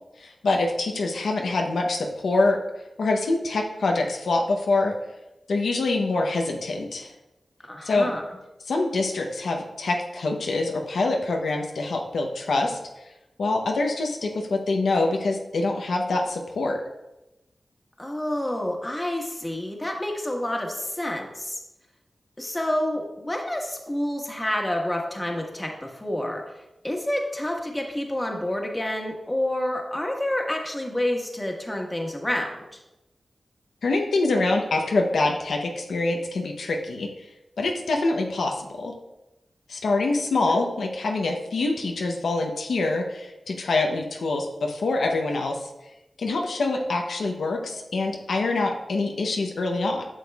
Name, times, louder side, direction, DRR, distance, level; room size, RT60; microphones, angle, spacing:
voice 1, 0.2-2.6 3.0-4.9 5.5-7.1 7.8-8.1 8.7-12.8 13.4-16.8 33.8-37.1 37.6-38.9 39.7-45.6 46.2-50.1, left 2 dB, 90° left, 2 dB, 0.7 m, -25 dB
voice 2, 7.7-8.2 18.0-21.6 22.4-26.4 26.8-32.8 40.5-40.6, left 1 dB, 20° left, 1 dB, 1.4 m, -28 dB
8.8 x 6.2 x 2.3 m, 0.95 s
cardioid pair, 50°, 0 cm